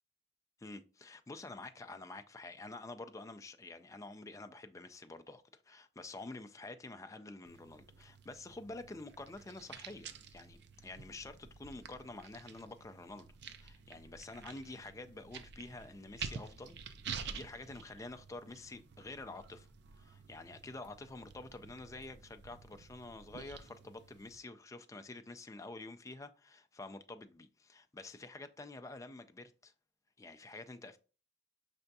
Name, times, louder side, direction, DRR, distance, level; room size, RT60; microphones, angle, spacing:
voice 1, 0.6-13.3 13.6-16.8 17.3-19.7 20.0-29.7 30.2-31.0, left 2 dB, 15° left, 0.4 m, -48 dB
sound 1, 7.4-24.4, right 6 dB, 65° right, 0.5 m, -50 dB
5.5 x 3.4 x 2.6 m
head